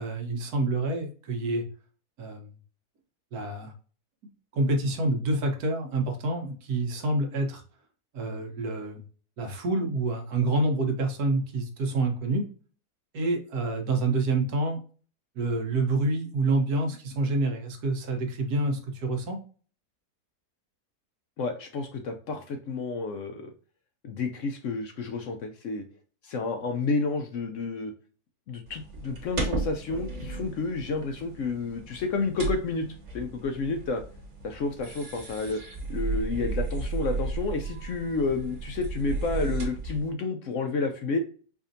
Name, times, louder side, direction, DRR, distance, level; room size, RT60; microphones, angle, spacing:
voice 1, 0.0-1.6 2.2-2.5 3.3-3.7 4.5-7.6 8.1-9.0 9.4-12.4 13.1-14.8 15.4-19.4, right 2 dB, 75° right, 3 dB, 1.4 m, -27 dB
voice 2, 21.4-23.4 24.0-25.8 26.2-27.9 28.5-32.9 33.1-34.0 34.4-35.6 35.9-41.2, left 3 dB, 65° left, 5 dB, 0.8 m, -30 dB
sound 1, 28.7-40.1, right 3 dB, 50° right, 1.5 m, -34 dB
4.8 x 2.6 x 2.6 m, 0.40 s
omnidirectional pair, 1.7 m